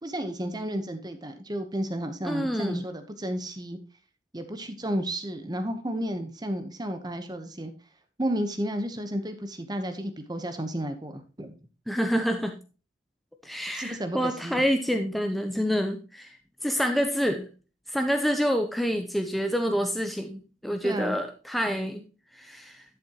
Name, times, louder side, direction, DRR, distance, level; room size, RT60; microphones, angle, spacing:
voice 1, 0.0-3.8 4.3-7.7 8.2-11.6 13.7-14.6 20.8-21.2, right 1 dB, 20° right, 8 dB, 1.0 m, -32 dB
voice 2, 2.2-2.8 11.9-12.5 13.4-17.5 17.9-22.0 22.3-22.8, equal, ahead, 5 dB, 0.6 m, -27 dB
11.5 x 7.0 x 2.9 m, 0.33 s
head